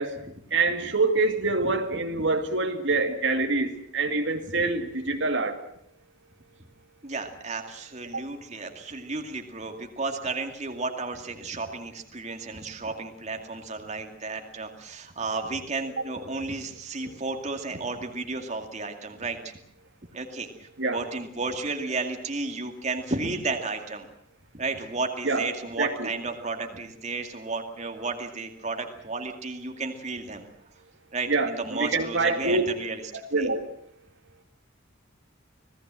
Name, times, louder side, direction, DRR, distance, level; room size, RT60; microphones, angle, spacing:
voice 1, 0.5-5.6 8.1-8.2 20.8-21.0 25.2-25.5 25.8-26.1 31.3-32.7 33.3-33.6, right 3 dB, 60° right, 5 dB, 2.2 m, -25 dB
voice 2, 7.0-19.5 20.1-24.1 24.5-30.5 31.1-33.0 33.4-33.5, right 3 dB, 35° right, 4 dB, 2.4 m, -33 dB
26.5 x 18.0 x 7.7 m, 0.71 s
head